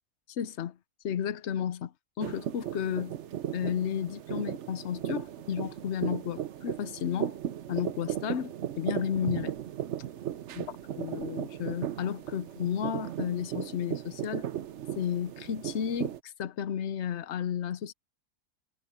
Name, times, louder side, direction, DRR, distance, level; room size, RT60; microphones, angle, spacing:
voice 1, 0.3-0.8 1.0-3.2 3.5-7.4 7.7-9.5 10.6-10.7 11.0-14.5 15.0-17.9, left 9 dB, 55° left, 0.9 m, -33 dB
sound 1, 2.2-16.2, right 11 dB, 60° right, 0.9 m, -36 dB
omnidirectional pair, 1.6 m